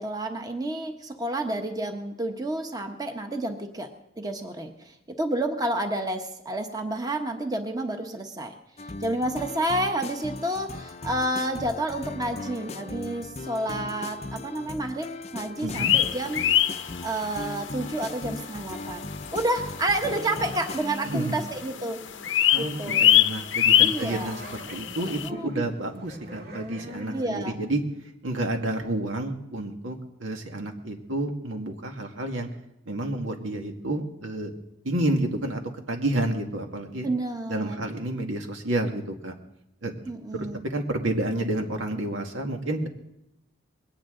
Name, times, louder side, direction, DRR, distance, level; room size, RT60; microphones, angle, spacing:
voice 1, 0.0-3.9 4.2-8.5 8.8-16.4 17.0-22.0 22.6-23.1 23.8-24.4 25.0-25.6 27.1-27.5 37.0-37.8 40.1-40.6, right 1 dB, 20° right, 5 dB, 1.2 m, -30 dB
sound 1, 8.8-20.8, left 2 dB, 35° left, 0.6 m, -38 dB
sound 2, 12.2-13.2 13.5-15.1 16.3-16.4 16.9-18.4 18.8-18.9 19.1-27.3, right 1 dB, 55° right, 1.9 m, -45 dB
voice 2, 15.6-16.0 21.0-21.4 22.5-27.8 28.2-32.5 32.9-34.5 34.8-35.6 35.9-37.1 37.5-39.3 39.8-39.9 40.3-42.9, right 1 dB, 85° right, 3 dB, 2.0 m, -30 dB
sound 3, 15.7-17.5 17.8-17.9 18.4-18.5 19.3-19.4 19.6-19.7 19.9-21.0 21.3-21.6 21.9-25.3, left 11 dB, 70° left, 0.7 m, -23 dB
21.0 x 18.0 x 3.8 m, 0.85 s
head